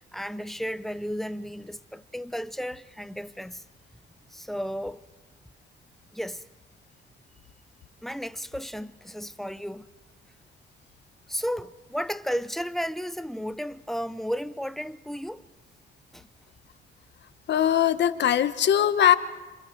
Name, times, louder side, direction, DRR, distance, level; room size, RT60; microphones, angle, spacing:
voice 1, 0.0-3.6 4.3-5.0 6.1-6.5 8.0-9.9 11.3-15.4 16.1-16.3, equal, ahead, 0.6 m, -33 dB
voice 2, 17.5-19.1, left 10 dB, 60° left, 1.2 m, -21 dB
28.5 x 27.0 x 4.6 m
cardioid pair, 90°, 20 cm